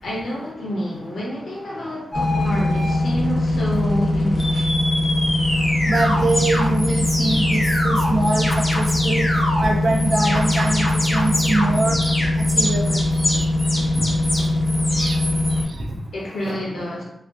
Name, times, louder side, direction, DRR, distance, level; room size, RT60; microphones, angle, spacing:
voice 1, 0.0-4.7 5.5-5.6 16.1-17.0, equal, 65° left, -4 dB, 0.8 m, -28 dB
sound 1, 2.1-15.6, left 1 dB, 25° left, 0.6 m, -20 dB
voice 2, 5.9-12.0 12.4-13.7 14.9-15.2 15.5-16.0, right 2 dB, 45° right, 1 dB, 0.3 m, -24 dB
2.4 x 2.4 x 2.3 m, 0.80 s
wide cardioid pair, 180°, 0 cm